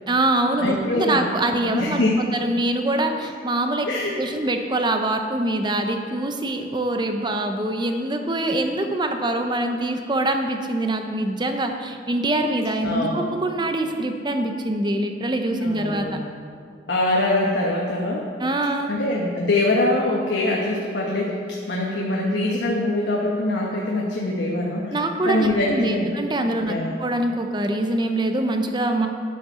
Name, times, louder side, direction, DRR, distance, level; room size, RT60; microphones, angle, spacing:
voice 1, 0.1-2.0 2.4-3.9 4.2-16.1 18.4-18.9 24.9-29.1, right 1 dB, 25° right, 5 dB, 0.8 m, -24 dB
voice 2, 0.6-2.1 3.9-4.2 12.8-13.2 15.6-16.3 16.9-18.3 18.9-21.4 21.7-25.0 25.2-26.1 26.7-26.9, left 2 dB, 70° left, -3 dB, 1.2 m, -23 dB
10.0 x 8.6 x 5.6 m, 2.2 s
head